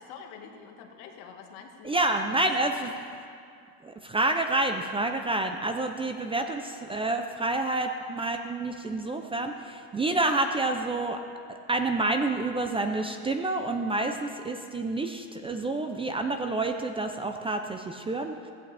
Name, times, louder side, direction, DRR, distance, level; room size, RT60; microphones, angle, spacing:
voice 1, 0.0-3.3, left 6 dB, 75° left, 3 dB, 1.7 m, -46 dB
voice 2, 1.8-2.9 3.8-11.2 11.5-18.5, right 2 dB, 15° right, 5 dB, 0.4 m, -28 dB
16.0 x 15.5 x 3.4 m, 2.3 s
cardioid pair, 140°, 42 cm